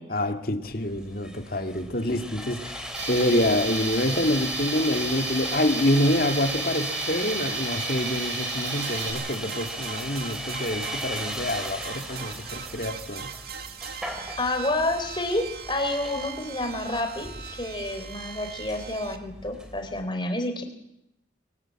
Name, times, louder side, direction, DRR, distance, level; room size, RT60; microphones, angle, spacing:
voice 1, 0.1-13.3, left 1 dB, 50° left, 6 dB, 2.0 m, -26 dB
Sawing, 0.6-20.0, equal, 5° right, 2.6 m, -38 dB
Tools, 2.9-9.1, right 3 dB, 75° right, 6.8 m, -32 dB
sound 1, 8.7-19.2, right 7 dB, 50° right, 1.9 m, -40 dB
voice 2, 14.4-20.6, left 2 dB, 25° left, 5 dB, 3.6 m, -29 dB
23.0 x 18.5 x 8.7 m, 0.82 s
head